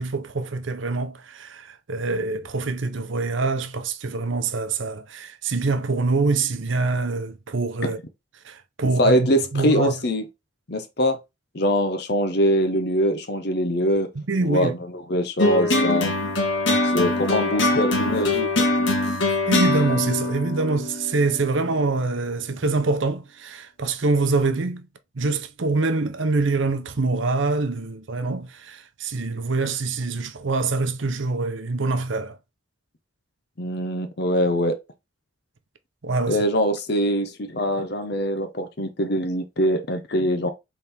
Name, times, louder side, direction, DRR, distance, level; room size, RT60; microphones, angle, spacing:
voice 1, 0.0-8.0 8.4-9.9 14.3-14.7 19.5-24.9 25.2-32.4 36.0-36.4, right 3 dB, 70° right, 0.7 m, -25 dB
voice 2, 9.0-10.2 10.7-11.2 11.5-14.1 14.4-16.1 16.8-18.5 33.6-34.8 36.3-40.5, equal, 50° left, 0.7 m, -23 dB
sound 1, 15.4-21.9, left 2 dB, 70° left, 1.3 m, -23 dB
4.4 x 3.5 x 3.4 m
head